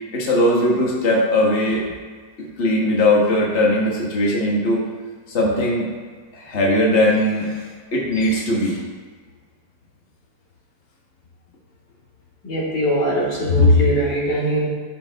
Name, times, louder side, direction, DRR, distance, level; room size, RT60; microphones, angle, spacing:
voice 1, 0.1-1.8 2.6-4.8 5.3-5.9 6.3-8.8, left 1 dB, 40° left, -3 dB, 1.8 m, -19 dB
voice 2, 12.4-14.7, left 1 dB, 90° left, -6 dB, 3.2 m, -18 dB
14.0 x 5.2 x 3.6 m, 1.5 s
omnidirectional pair, 1.8 m